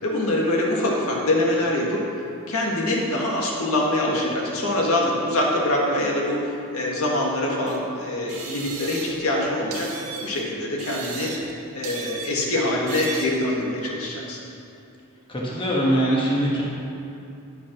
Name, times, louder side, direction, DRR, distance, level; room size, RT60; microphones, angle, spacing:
voice 1, 0.0-2.0 2.5-6.4 6.7-9.9 10.2-11.5 11.7-14.4, left 1 dB, 75° left, -2 dB, 1.7 m, -24 dB
sound 1, 7.7-7.8 8.3-9.3 9.7-10.4 10.8-11.6 11.8-12.5 12.9-13.4, right 5 dB, 85° right, 1.4 m, -36 dB
voice 2, 15.3-16.6, right 1 dB, 20° left, -4 dB, 1.2 m, -22 dB
10.0 x 5.9 x 6.0 m, 2.7 s
head